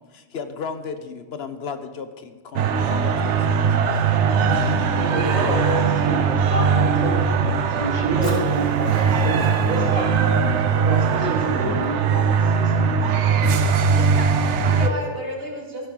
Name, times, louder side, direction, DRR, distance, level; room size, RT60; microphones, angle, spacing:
voice 1, 0.0-3.6, left 5 dB, 65° left, 9 dB, 1.1 m, -34 dB
sound 1, 2.6-14.9, right 6 dB, 85° right, 1.0 m, -20 dB
voice 2, 4.9-7.2 7.8-10.2 10.7-12.9 14.8-15.2, equal, 30° left, -3 dB, 3.0 m, -28 dB
Fire, 8.2-12.2, right 1 dB, 35° right, 5.2 m, -46 dB
voice 3, 13.8-15.9, right 1 dB, 60° right, -2 dB, 2.7 m, -33 dB
15.5 x 10.5 x 3.8 m, 1.3 s
omnidirectional pair, 1.2 m